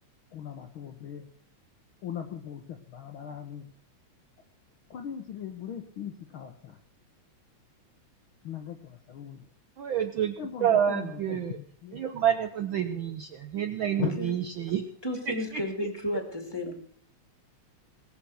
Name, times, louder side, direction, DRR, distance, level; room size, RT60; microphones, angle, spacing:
voice 1, 0.3-1.2 2.0-3.7 4.9-6.8 8.4-9.4 10.4-12.0 14.0-14.1 16.6-16.7, left 9 dB, 60° left, 4 dB, 1.4 m, -38 dB
voice 2, 9.8-10.3 10.6-11.6 11.9-14.8, right 9 dB, 85° right, 7 dB, 1.1 m, -28 dB
voice 3, 15.0-16.8, left 1 dB, 10° left, 3 dB, 2.3 m, -32 dB
21.0 x 7.1 x 6.4 m, 0.63 s
omnidirectional pair, 3.3 m